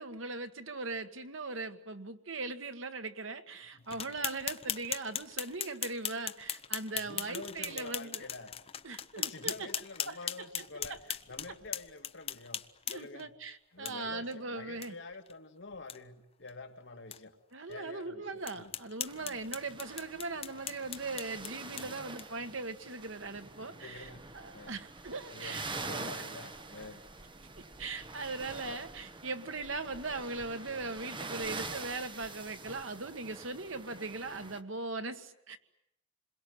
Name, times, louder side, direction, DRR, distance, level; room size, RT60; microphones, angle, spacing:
voice 1, 0.0-8.3 8.8-9.7 10.1-10.2 10.6-11.0 12.9-14.9 17.5-24.1 24.3-26.1 27.6-35.6, right 3 dB, 85° right, 8 dB, 1.8 m, -40 dB
sound 1, 3.9-13.2 13.8-13.9 14.3-14.4 14.8-14.9 15.3-15.4 15.7-16.0 16.5-16.6 17.1-17.2 17.7-17.8 18.4-22.5, left 9 dB, 30° left, 1.0 m, -39 dB
voice 2, 6.9-8.5 9.2-12.6 12.9-17.4 17.7-18.7 19.2-19.6 21.6-22.0 23.7-24.3 24.5-24.8 25.3-27.0, left 3 dB, 65° left, 5 dB, 2.2 m, -48 dB
sound 2, 19.1-34.6, right 3 dB, 25° right, 1.2 m, -45 dB
27.5 x 22.0 x 9.4 m, 0.81 s
head